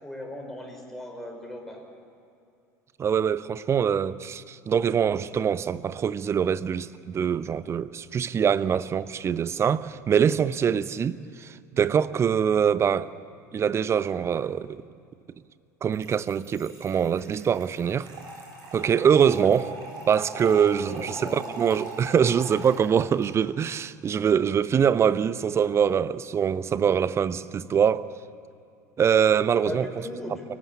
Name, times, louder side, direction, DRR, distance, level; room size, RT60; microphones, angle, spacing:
voice 1, 0.0-1.8 19.3-19.5 20.9-21.6 29.6-30.4, left 1 dB, 5° left, 5.4 m, -37 dB
voice 2, 3.0-13.1 13.5-14.8 15.8-18.1 18.7-19.7 20.1-28.1 29.0-29.9, right 7 dB, 30° right, 0.8 m, -24 dB
Trickle dribble / Fill (with liquid), 15.9-23.3, right 2 dB, 45° right, 7.5 m, -41 dB
23.0 x 19.0 x 8.7 m
figure-of-eight pair, 70°, 10 cm